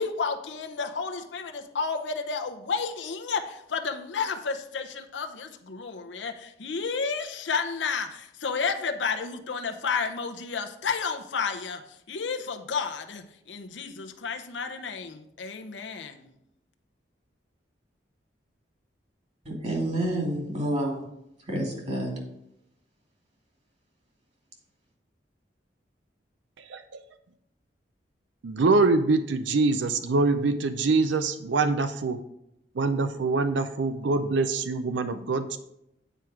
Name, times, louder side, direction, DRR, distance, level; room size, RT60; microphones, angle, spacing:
voice 1, 0.0-11.8 12.1-16.3, left 5 dB, 85° left, 6 dB, 0.7 m, -31 dB
voice 2, 19.5-21.0 21.5-22.1, right 1 dB, 40° right, -1 dB, 2.5 m, -28 dB
voice 3, 28.4-32.2 32.8-35.6, right 3 dB, 85° right, 10 dB, 0.5 m, -24 dB
9.0 x 4.6 x 4.8 m, 0.81 s
head